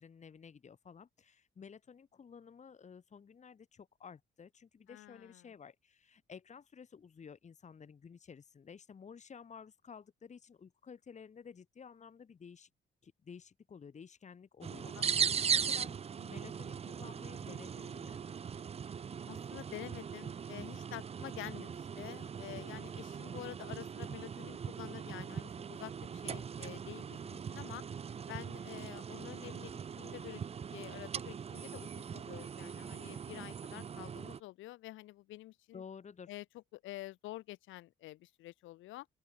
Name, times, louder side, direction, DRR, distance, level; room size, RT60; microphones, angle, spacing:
voice 1, 0.0-12.7 13.0-18.2 35.7-36.3, left 6 dB, 35° left, 1.3 m, -53 dB
voice 2, 4.9-5.5 15.0-15.1 15.4-15.5 19.3-27.8 28.3-30.4 30.7-35.8 36.3-36.4 36.7-39.1, left 16 dB, 80° left, 0.5 m, -48 dB
sound 1, 14.6-34.4, right 7 dB, 30° right, 0.5 m, -39 dB
open air
cardioid pair, 90°, 20 cm